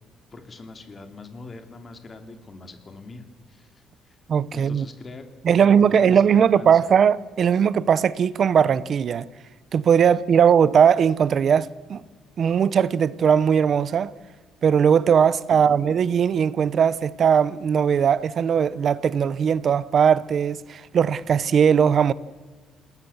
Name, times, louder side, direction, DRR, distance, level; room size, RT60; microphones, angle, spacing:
voice 1, 0.3-3.7 4.1-4.2 4.5-6.8 15.5-15.8, left 3 dB, 25° left, 2.7 m, -42 dB
voice 2, 4.3-4.9 5.4-9.2 9.7-12.0 12.4-14.1 14.6-22.1, right 7 dB, 40° right, 0.7 m, -19 dB
27.5 x 20.0 x 7.1 m
cardioid pair, 150°, 0 cm